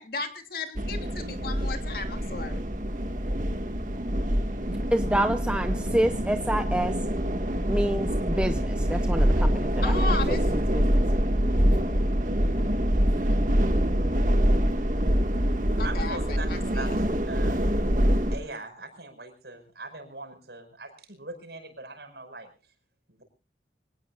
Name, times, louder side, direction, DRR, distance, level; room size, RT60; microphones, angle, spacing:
voice 1, 0.0-2.6 9.8-10.4 11.8-12.1 15.8-16.9, left 3 dB, 55° left, 6 dB, 3.0 m, -35 dB
sound 1, 0.8-18.4, equal, 45° right, 1.9 m, -25 dB
voice 2, 4.9-7.0 7.7-11.0, right 1 dB, 5° right, 7 dB, 0.8 m, -28 dB
voice 3, 15.8-16.5 16.7-18.0 18.3-22.5, right 3 dB, 70° right, 7 dB, 5.6 m, -41 dB
25.5 x 18.0 x 2.5 m, 0.35 s
head